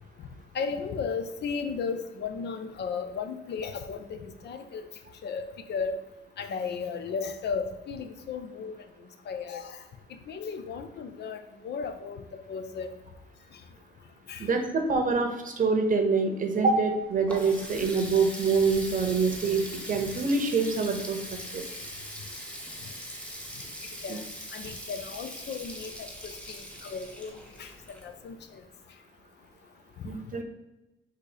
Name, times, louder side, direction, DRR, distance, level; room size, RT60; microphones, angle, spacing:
voice 1, 0.5-4.9 5.2-6.0 6.4-8.7 9.3-9.8 10.3-11.4 11.6-12.9 14.3-14.5 24.0-24.2 24.5-27.3 27.6-27.7 28.0-28.6, left 5 dB, 60° left, 8 dB, 0.5 m, -35 dB
voice 2, 14.4-21.2 21.5-21.6 24.1-24.2 30.0-30.4, right 4 dB, 40° right, 5 dB, 0.8 m, -25 dB
Water tap faucet, 16.9-28.5, equal, 5° left, 0.8 m, -41 dB
4.1 x 2.7 x 4.8 m, 1.0 s
cardioid pair, 90°, 20 cm